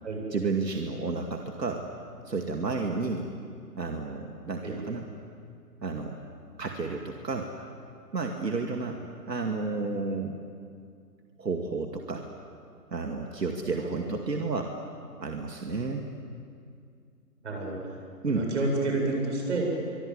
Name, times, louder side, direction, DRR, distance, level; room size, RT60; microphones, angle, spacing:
voice 1, 0.3-1.9 2.3-3.3 3.8-5.1 5.8-6.2 6.6-7.5 8.1-9.0 9.3-10.4 11.4-12.2 12.9-14.7 15.2-16.0 18.2-18.5, right 3 dB, 80° right, 2 dB, 2.4 m, -31 dB
voice 2, 17.4-17.8 18.3-19.7, right 2 dB, 45° right, 0 dB, 8.0 m, -29 dB
24.0 x 24.0 x 8.1 m, 2.3 s
figure-of-eight pair, 165°, 49 cm